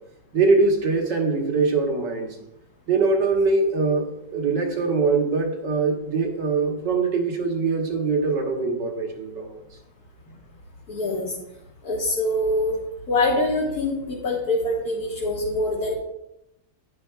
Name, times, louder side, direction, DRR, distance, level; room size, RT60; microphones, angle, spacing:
voice 1, 0.3-2.4 2.9-9.6, right 4 dB, 70° right, 2 dB, 2.0 m, -22 dB
voice 2, 10.9-11.3 11.8-12.8 13.1-15.9, left 2 dB, 55° left, -5 dB, 2.0 m, -24 dB
11.0 x 9.7 x 2.3 m, 0.85 s
omnidirectional pair, 2.0 m